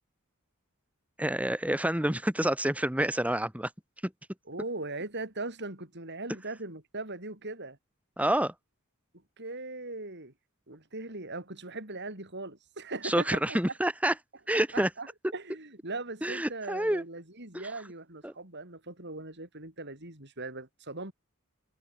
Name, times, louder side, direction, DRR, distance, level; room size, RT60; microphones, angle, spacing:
voice 1, 1.2-3.7 8.2-8.5 13.0-14.1 14.5-14.9 16.2-17.0 18.2-18.3, right 1 dB, 5° right, 2.8 m, -28 dB
voice 2, 4.5-7.8 9.4-10.3 10.7-13.6 14.5-21.1, right 2 dB, 50° right, 7.2 m, -39 dB
head